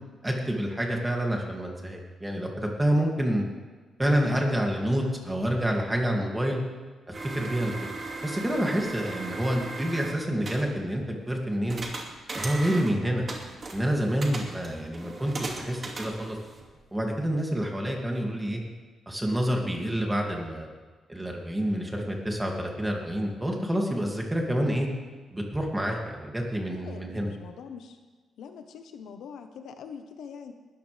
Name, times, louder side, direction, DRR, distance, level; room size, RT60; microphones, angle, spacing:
voice 1, 0.2-3.4 4.0-6.6 7.1-7.7 8.2-11.8 12.3-13.2 13.7-16.4 16.9-18.6 19.1-20.7 21.1-24.9 25.3-27.3, equal, 10° right, 0 dB, 2.6 m, -28 dB
sound 1, 7.1-10.7 11.7-13.0 13.3-16.8, right 3 dB, 35° right, 2.4 m, -38 dB
voice 2, 26.7-28.0 28.4-30.5, left 6 dB, 80° left, 6 dB, 1.2 m, -43 dB
19.5 x 14.0 x 3.5 m, 1.4 s
cardioid pair, 120°, 0 cm